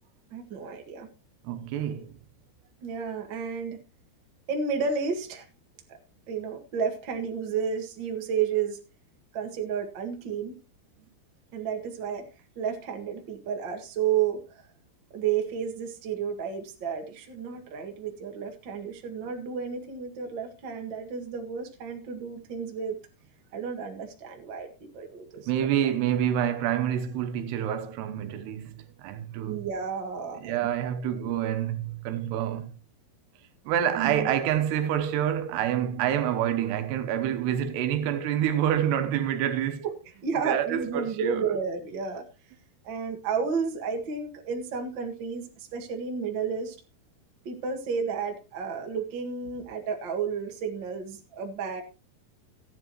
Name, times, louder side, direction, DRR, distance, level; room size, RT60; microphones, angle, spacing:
voice 1, 0.3-1.1 2.8-3.8 4.5-5.5 5.9-6.0 6.3-8.8 9.3-10.5 11.5-12.3 12.6-14.7 15.1-23.0 23.5-25.7 29.4-30.7 31.2-31.3 34.0-34.3 39.8-39.9 40.2-42.2 42.8-46.8 47.5-51.8, right 6 dB, 40° right, 1.7 m, -32 dB
voice 2, 1.4-2.2 11.0-11.1 25.5-29.6 30.4-32.7 33.7-39.8 40.4-41.5, right 10 dB, 85° right, 3.1 m, -27 dB
15.0 x 9.8 x 3.0 m
omnidirectional pair, 4.7 m